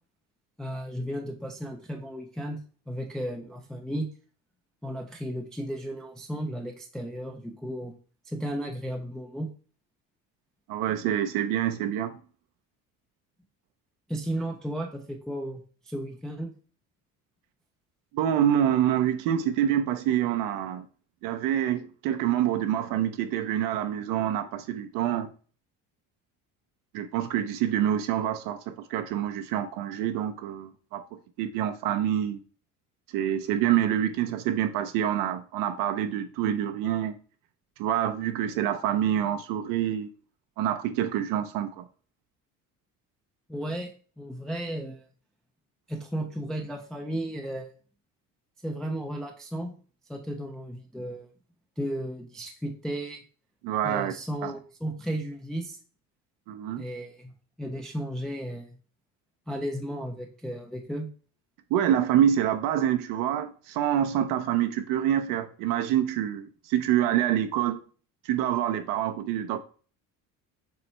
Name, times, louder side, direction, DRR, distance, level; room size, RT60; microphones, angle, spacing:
voice 1, 0.6-2.6 2.9-4.1 4.8-7.9 8.2-9.5 14.1-16.5 43.5-43.9 44.2-45.1 45.9-47.7 48.6-49.8 50.1-51.3 51.8-53.2 53.8-55.8 56.8-57.3 57.6-58.8 59.5-61.1, right 1 dB, ahead, 0.3 m, -34 dB
voice 2, 10.7-12.2 18.1-20.9 21.2-25.3 26.9-32.4 33.1-37.1 37.8-40.1 40.6-41.9 53.6-54.1 54.4-54.5 56.5-56.9 61.7-67.8 68.2-69.6, right 10 dB, 80° right, 0.6 m, -26 dB
6.9 x 3.2 x 4.3 m
cardioid pair, 180°, 32 cm